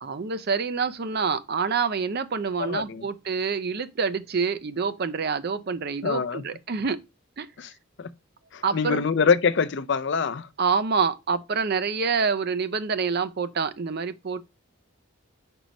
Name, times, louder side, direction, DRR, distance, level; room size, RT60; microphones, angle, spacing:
voice 1, 0.0-7.0 7.4-7.5 8.6-9.0 10.6-14.4, right 5 dB, 45° right, 0.5 m, -27 dB
voice 2, 2.6-3.0 6.0-6.4 7.6-7.7 8.0-8.1 8.5-10.5, left 5 dB, 50° left, 0.4 m, -24 dB
5.2 x 4.5 x 5.2 m
head